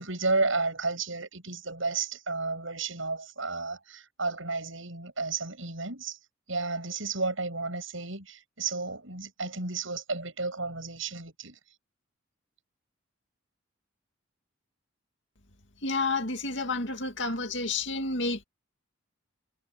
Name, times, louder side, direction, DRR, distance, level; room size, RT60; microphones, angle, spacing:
voice 1, 0.0-6.2 6.5-11.6, right 3 dB, 70° right, 7.4 m, -32 dB
voice 2, 15.8-18.4, left 3 dB, 60° left, 2.5 m, -30 dB
head